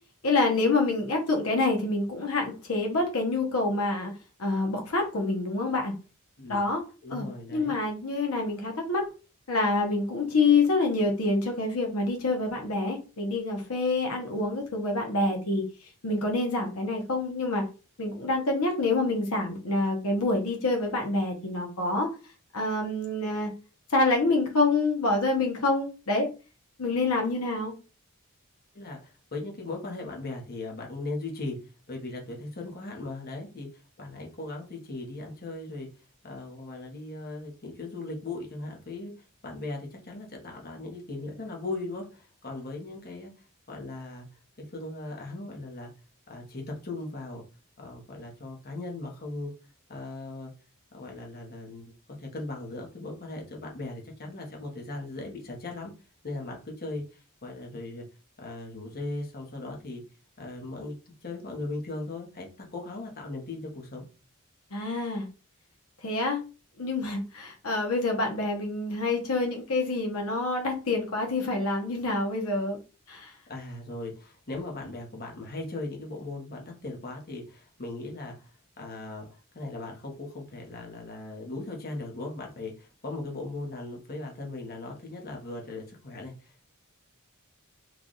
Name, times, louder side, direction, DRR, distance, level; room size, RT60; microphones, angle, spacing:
voice 1, 0.2-4.1 4.4-5.9 6.5-6.8 7.1-7.3 7.5-9.1 9.5-15.6 16.0-17.7 18.0-22.1 22.5-23.5 23.9-26.3 26.8-27.7 64.7-65.3 66.0-66.4 66.8-72.8 73.1-73.3, left 2 dB, 75° left, 2 dB, 0.9 m, -27 dB
voice 2, 7.0-7.7 28.7-31.6 31.9-33.7 34.0-35.9 36.2-39.1 39.4-43.3 43.7-44.2 44.7-45.9 46.3-47.4 47.8-49.5 49.9-50.5 50.9-51.9 52.2-55.9 56.2-58.0 58.4-60.0 60.4-61.0 61.2-64.1 73.5-78.5 78.8-86.7, left 2 dB, 45° left, 1 dB, 1.0 m, -38 dB
3.2 x 2.4 x 3.9 m, 0.33 s
head